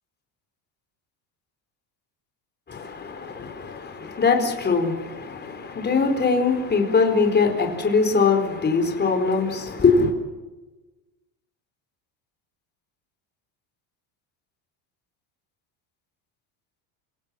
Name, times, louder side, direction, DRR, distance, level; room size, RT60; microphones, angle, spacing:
voice 1, 2.7-10.1, left 4 dB, 20° left, 4.5 m, -22 dB
29.5 x 17.5 x 7.7 m
cardioid pair, 145°, 46 cm